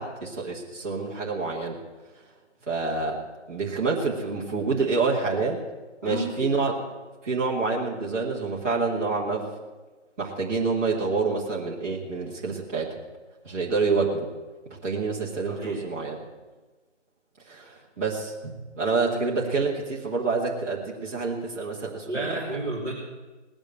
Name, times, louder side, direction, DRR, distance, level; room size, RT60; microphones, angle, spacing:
voice 1, 0.0-1.8 2.7-3.2 3.5-5.6 6.0-6.8 7.2-9.5 10.2-13.0 13.4-14.3 14.8-16.2 17.5-22.4, right 4 dB, 10° right, -9 dB, 1.5 m, -27 dB
voice 2, 6.0-6.6 15.5-15.8 22.1-22.9, right 1 dB, 15° left, -8 dB, 2.3 m, -31 dB
19.0 x 7.1 x 8.9 m, 1.3 s
figure-of-eight pair, 165°, 37 cm